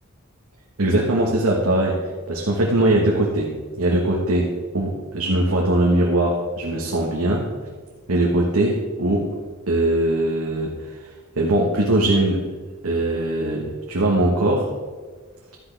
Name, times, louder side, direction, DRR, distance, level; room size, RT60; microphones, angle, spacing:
voice 1, 0.8-7.5 8.1-9.3 9.7-11.0 11.3-12.4 12.8-14.7, right 1 dB, 80° right, -2 dB, 1.3 m, -21 dB
12.5 x 10.0 x 3.4 m, 1.4 s
head